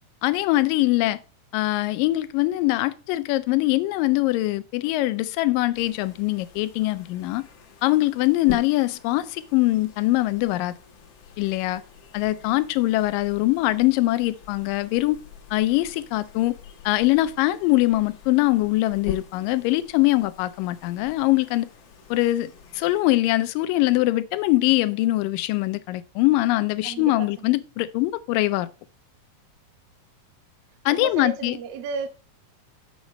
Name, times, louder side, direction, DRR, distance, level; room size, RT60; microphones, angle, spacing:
voice 1, 0.2-1.2 1.5-7.4 7.8-10.7 11.4-11.8 12.1-15.2 15.5-16.6 16.9-21.7 22.1-28.7 30.9-31.6, left 18 dB, 80° left, 2.1 m, -22 dB
sound 1, 5.7-23.0, left 6 dB, 60° left, 1.7 m, -44 dB
voice 2, 26.8-27.5 30.9-32.1, right 5 dB, 75° right, 1.4 m, -33 dB
7.3 x 6.1 x 4.1 m
omnidirectional pair, 4.1 m